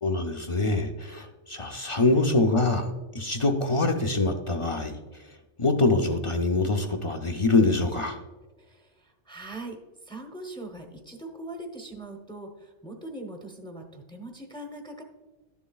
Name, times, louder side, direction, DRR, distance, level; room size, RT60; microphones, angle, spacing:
voice 1, 0.0-2.9 3.1-5.0 5.6-8.2, left 2 dB, 35° left, 4 dB, 0.5 m, -24 dB
voice 2, 8.6-15.0, right 2 dB, 5° left, 3 dB, 0.8 m, -41 dB
12.0 x 7.1 x 2.3 m, 1.2 s
omnidirectional pair, 1.2 m